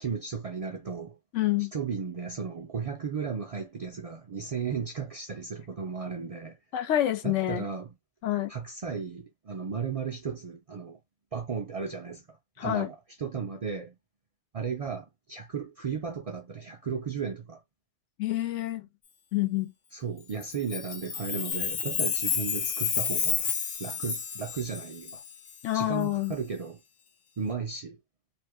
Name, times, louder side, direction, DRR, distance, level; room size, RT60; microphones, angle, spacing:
voice 1, 0.0-1.2 1.7-6.6 7.2-7.9 8.5-11.0 11.3-14.0 14.5-17.6 19.9-23.5 23.8-25.2 25.7-26.8 27.4-28.0, right 6 dB, 65° right, 0.3 m, -35 dB
voice 2, 1.3-1.7 6.7-7.7 8.2-8.5 12.6-12.9 18.2-18.9 19.3-19.7 25.6-26.4, left 13 dB, 85° left, 1.0 m, -27 dB
Chime, 20.4-25.5, left 7 dB, 55° left, 0.6 m, -31 dB
2.6 x 2.5 x 3.4 m
omnidirectional pair, 1.2 m